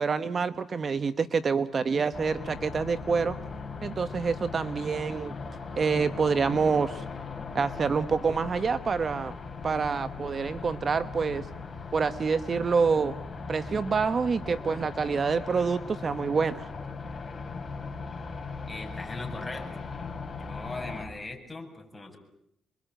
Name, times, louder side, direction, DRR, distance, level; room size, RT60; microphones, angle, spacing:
voice 1, 0.0-3.4 3.8-5.3 5.8-7.0 7.5-9.3 9.6-11.5 11.9-13.2 13.5-16.7, right 5 dB, 40° right, 13 dB, 1.0 m, -27 dB
sound 1, 2.1-21.1, left 4 dB, 30° left, 5.2 m, -39 dB
voice 2, 18.7-19.9 20.4-22.2, left 2 dB, 15° left, 2 dB, 7.6 m, -40 dB
27.0 x 23.0 x 9.1 m, 0.73 s
cardioid pair, 90°, 0 cm